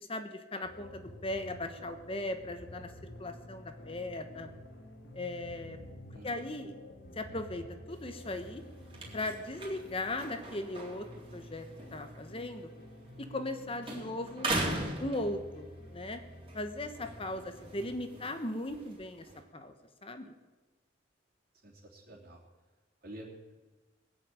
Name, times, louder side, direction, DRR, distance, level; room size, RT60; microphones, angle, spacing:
voice 1, 0.0-2.9 3.2-4.5 5.1-5.8 6.2-6.7 7.1-8.6 9.1-11.1 11.3-11.7 11.9-12.7 13.2-14.5 15.0-16.2 16.5-19.3 19.5-19.7 20.0-20.3, left 1 dB, 30° left, 8 dB, 1.2 m, -38 dB
sound 1, 0.6-9.2, left 2 dB, 85° left, 1.3 m, -53 dB
sound 2, 0.6-18.0, left 1 dB, 55° left, 3.1 m, -52 dB
voice 2, 6.1-6.7 17.7-17.9 21.6-22.4 23.0-23.5, right 1 dB, 55° right, -3 dB, 3.2 m, -50 dB
sound 3, 7.9-13.5 13.8-15.8 16.3-19.4, right 2 dB, 30° right, 3.5 m, -40 dB
20.0 x 7.8 x 9.0 m, 1.2 s
head